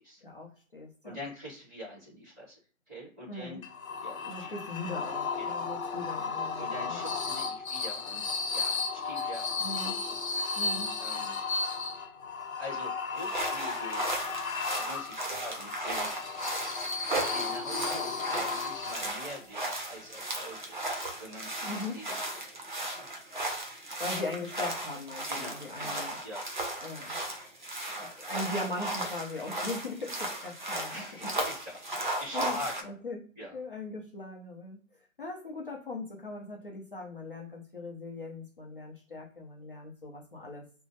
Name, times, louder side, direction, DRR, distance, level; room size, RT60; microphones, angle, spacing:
voice 1, 0.2-1.2 3.3-3.6 4.3-7.0 9.6-9.9 10.6-10.9 21.6-22.0 24.0-26.2 26.8-27.2 28.0-31.0 32.3-32.6 32.8-33.2 33.5-34.8 35.2-40.6, left 2 dB, 40° left, -1 dB, 0.6 m, -39 dB
voice 2, 1.0-2.6 2.9-3.6 4.0-4.5 5.4-6.0 6.6-8.2 8.5-9.7 10.1-10.7 11.0-11.4 12.6-14.0 14.8-16.2 17.3-22.3 22.6-23.0 25.3-26.4 27.0-27.1 30.9-32.9 33.4-33.5, left 1 dB, 10° right, -8 dB, 1.4 m, -45 dB
sound 1, 3.6-19.4, left 4 dB, 70° left, 0.9 m, -34 dB
sound 2, 13.2-32.8, right 1 dB, 35° right, 0.6 m, -36 dB
3.0 x 2.1 x 2.8 m, 0.43 s
hypercardioid pair, 165°, 42 cm